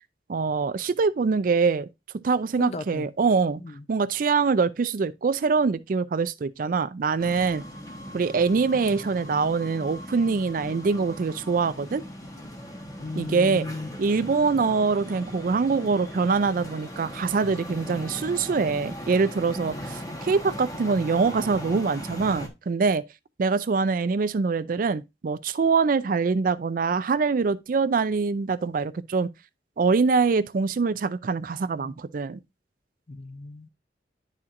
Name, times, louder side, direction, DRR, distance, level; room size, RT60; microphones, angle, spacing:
voice 1, 0.3-1.9 2.2-3.6 3.9-7.6 8.1-12.0 13.2-13.7 14.0-23.0 23.4-29.3 29.8-32.4, right 4 dB, 50° right, 0.4 m, -24 dB
voice 2, 2.6-3.1 3.6-3.9 13.0-14.0 19.8-19.9 31.7-32.0 33.1-33.7, left 2 dB, 35° left, 0.5 m, -36 dB
sound 1, 7.2-22.5, equal, 20° left, 1.1 m, -39 dB
10.5 x 4.2 x 2.5 m
head